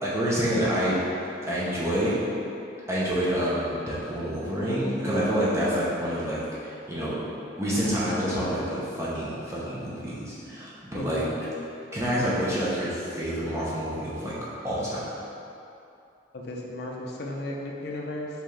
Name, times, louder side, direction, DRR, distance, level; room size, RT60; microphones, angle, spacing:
voice 1, 0.0-1.0 1.5-2.2 2.9-7.2 7.6-11.3 11.9-14.3 14.6-15.1, equal, 15° right, -9 dB, 0.7 m, -27 dB
voice 2, 10.9-11.3 16.3-18.3, left 1 dB, 60° left, -1 dB, 0.5 m, -35 dB
5.6 x 2.6 x 3.2 m, 2.7 s
head